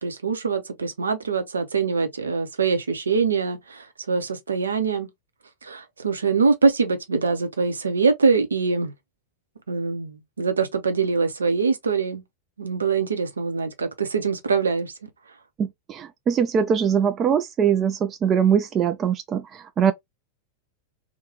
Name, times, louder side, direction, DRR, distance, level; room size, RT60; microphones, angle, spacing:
voice 1, 0.0-5.1 5.6-8.9 9.7-12.2 12.6-14.9, right 5 dB, 75° right, 0.7 m, -23 dB
voice 2, 15.6-19.9, right 7 dB, 25° right, 0.3 m, -22 dB
3.0 x 2.1 x 3.0 m
figure-of-eight pair, 90°, 0 cm